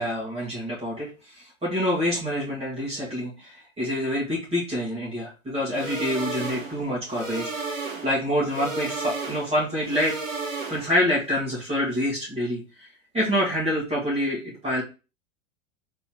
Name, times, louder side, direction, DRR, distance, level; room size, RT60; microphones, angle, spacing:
voice 1, 0.0-7.7 8.0-10.2 10.7-14.8, equal, 15° right, -5 dB, 2.5 m, -27 dB
sound 1, 5.7-11.1, right 3 dB, 80° right, 1.2 m, -33 dB
3.9 x 3.7 x 3.1 m, 0.31 s
figure-of-eight pair, 95°, 38 cm